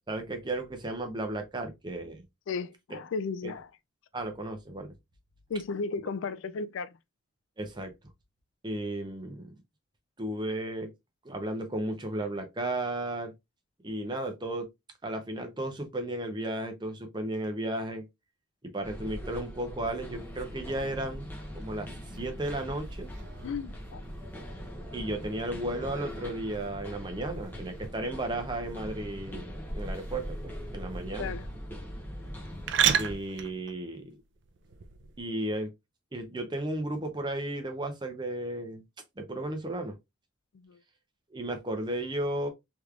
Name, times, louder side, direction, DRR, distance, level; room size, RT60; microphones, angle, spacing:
voice 1, 0.1-2.2 2.9-3.0 3.4-3.5 4.1-4.9 7.6-7.9 8.6-9.5 10.2-10.9 11.2-13.3 13.8-14.7 15.0-18.0 18.6-23.1 24.9-31.3 33.0-34.1 35.2-35.7 36.1-38.8 39.2-40.0 41.3-42.5, right 1 dB, 20° right, 0.7 m, -34 dB
voice 2, 2.5-3.7 5.5-6.9 23.4-24.0 31.2-31.5 40.5-40.8, left 4 dB, 70° left, 0.3 m, -34 dB
sound 1, 18.8-33.2, equal, 10° left, 0.9 m, -41 dB
sound 2, 20.1-35.2, right 8 dB, 60° right, 0.4 m, -37 dB
3.4 x 3.1 x 2.4 m
head